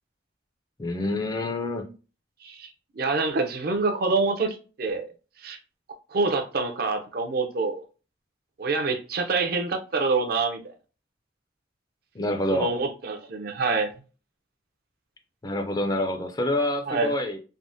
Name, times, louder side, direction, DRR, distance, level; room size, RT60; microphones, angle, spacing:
voice 1, 0.8-1.9 12.1-12.7 15.4-17.4, left 1 dB, 20° left, 5 dB, 0.3 m, -27 dB
voice 2, 2.9-5.1 5.4-5.6 6.1-7.8 8.6-10.7 12.5-13.9 16.9-17.1, right 3 dB, 55° right, 5 dB, 0.5 m, -26 dB
3.4 x 2.0 x 2.6 m, 0.34 s
head